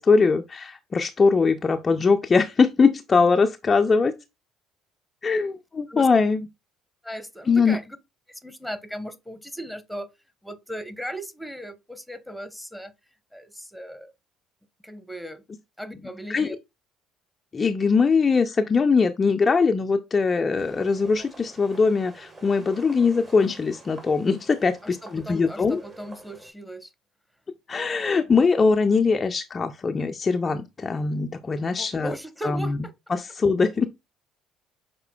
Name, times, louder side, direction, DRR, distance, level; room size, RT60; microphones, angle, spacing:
voice 1, 0.0-4.1 5.2-6.5 7.5-7.8 16.3-16.5 17.5-25.8 27.7-32.1 32.4-32.8 33.1-33.9, left 4 dB, 30° left, 0.4 m, -21 dB
voice 2, 7.0-8.0 8.3-10.1 10.4-12.9 13.3-14.1 14.8-15.4 15.8-16.6 24.8-26.9 31.8-32.9, equal, ahead, 0.9 m, -37 dB
sound 1, 20.6-26.5, right 2 dB, 35° right, 1.6 m, -48 dB
5.7 x 3.6 x 2.2 m
figure-of-eight pair, 55°, 0 cm